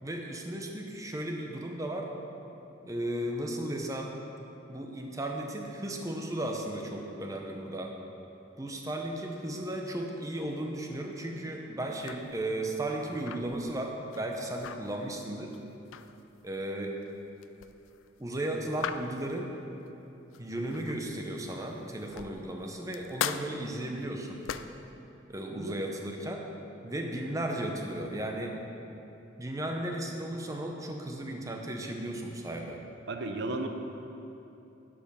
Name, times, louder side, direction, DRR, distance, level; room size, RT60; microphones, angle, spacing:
voice 1, 0.0-2.1 2.8-4.1 4.7-7.9 8.6-15.6 16.4-17.0 18.2-19.5 20.4-24.4 25.3-26.5 26.8-28.6 29.4-32.8, right 1 dB, 15° right, 1 dB, 0.8 m, -35 dB
sound 1, 11.9-21.2 21.7-24.9, left 8 dB, 80° left, 0.3 m, -41 dB
voice 2, 25.5-25.8 33.1-33.7, right 2 dB, 60° right, 5 dB, 0.7 m, -34 dB
11.5 x 5.1 x 5.3 m, 2.9 s
head